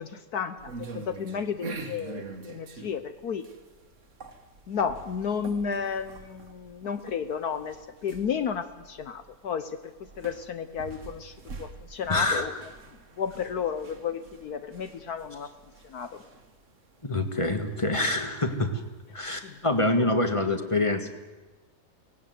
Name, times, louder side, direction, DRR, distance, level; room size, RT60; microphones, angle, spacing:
voice 1, 0.0-3.5 4.7-7.8 8.0-12.5 13.2-15.5 15.8-16.2 19.4-19.6 20.0-20.1, left 7 dB, 65° left, 10 dB, 1.3 m, -32 dB
sound 1, 0.6-19.8, right 4 dB, 45° right, 1.7 m, -45 dB
voice 2, 12.1-12.6 17.0-18.8 19.1-21.1, left 2 dB, 20° left, 7 dB, 1.6 m, -26 dB
18.5 x 17.0 x 9.2 m, 1.2 s
omnidirectional pair, 1.9 m